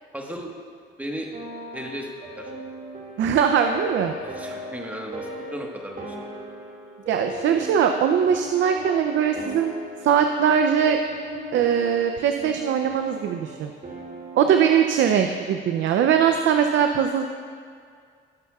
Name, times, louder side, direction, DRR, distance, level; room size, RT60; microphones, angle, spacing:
voice 1, 0.1-0.5 1.0-1.3 1.7-2.1 2.4-2.5 4.2-6.3, equal, 10° right, 0 dB, 1.3 m, -35 dB
sound 1, 1.3-14.6, right 1 dB, 45° right, 1.9 m, -38 dB
voice 2, 3.2-4.1 7.1-9.7 10.0-11.0 11.5-13.7 14.4-17.2, right 8 dB, 70° right, 6 dB, 0.5 m, -21 dB
17.0 x 6.7 x 2.4 m, 2.1 s
cardioid pair, 90°, 20 cm